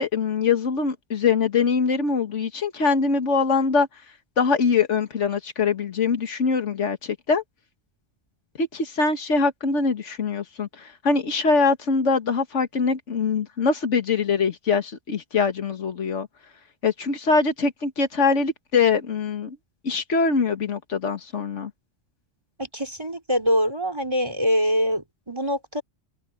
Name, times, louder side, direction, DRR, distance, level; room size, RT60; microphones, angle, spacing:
voice 1, 0.0-3.9 4.4-7.4 8.6-16.3 16.8-19.6 19.8-21.7, left 4 dB, 85° left, 1.9 m, -23 dB
voice 2, 22.6-25.8, equal, 20° right, 4.7 m, -24 dB
omnidirectional pair, 1.2 m